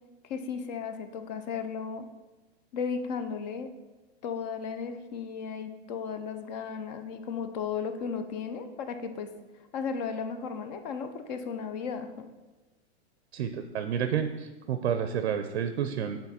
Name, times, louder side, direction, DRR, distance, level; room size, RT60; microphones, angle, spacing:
voice 1, 0.3-2.1 2.7-3.7 4.2-9.3 9.7-12.3, left 6 dB, 40° left, 8 dB, 0.6 m, -35 dB
voice 2, 13.3-16.2, right 8 dB, 85° right, 8 dB, 0.6 m, -30 dB
7.0 x 3.8 x 4.2 m, 1.2 s
hypercardioid pair, 150°, 33 cm